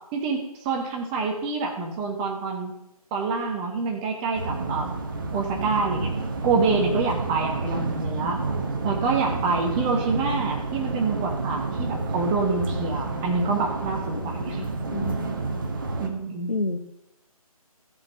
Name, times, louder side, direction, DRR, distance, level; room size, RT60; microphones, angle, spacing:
voice 1, 0.1-2.7 3.1-5.0 5.3-6.1 6.4-8.4 8.8-14.6 16.0-16.5, right 4 dB, 15° right, 2 dB, 1.0 m, -26 dB
sound 1, 4.3-16.1, right 3 dB, 35° right, 1.3 m, -29 dB
voice 2, 14.1-15.3 16.5-16.8, left 2 dB, 80° left, 9 dB, 1.3 m, -31 dB
14.0 x 5.3 x 7.3 m, 0.86 s
figure-of-eight pair, 150°, 19 cm